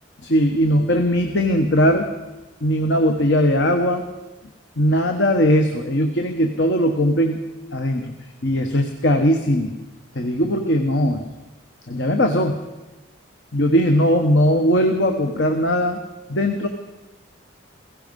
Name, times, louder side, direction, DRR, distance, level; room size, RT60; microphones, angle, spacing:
voice 1, 0.2-2.1 2.6-4.0 4.8-7.4 7.7-8.1 8.4-9.7 10.1-11.2 11.9-12.6 13.5-16.0 16.3-16.7, equal, 60° left, 5 dB, 1.1 m, -19 dB
16.5 x 16.0 x 5.4 m, 1.1 s
head